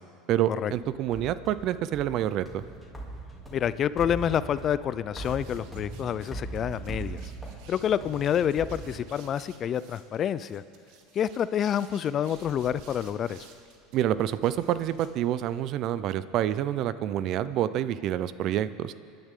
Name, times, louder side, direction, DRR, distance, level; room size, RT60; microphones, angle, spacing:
voice 1, 0.3-2.6 13.9-18.9, right 11 dB, 55° right, 15 dB, 0.5 m, -27 dB
sound 1, 0.7-9.5, right 2 dB, ahead, 2.8 m, -41 dB
voice 2, 3.5-7.3 7.7-10.6 11.1-13.5, left 9 dB, 40° left, 16 dB, 0.4 m, -28 dB
sound 2, 5.2-15.6, right 5 dB, 70° right, 1.5 m, -55 dB
27.0 x 10.5 x 3.7 m, 2.4 s
supercardioid pair, 115°, 0 cm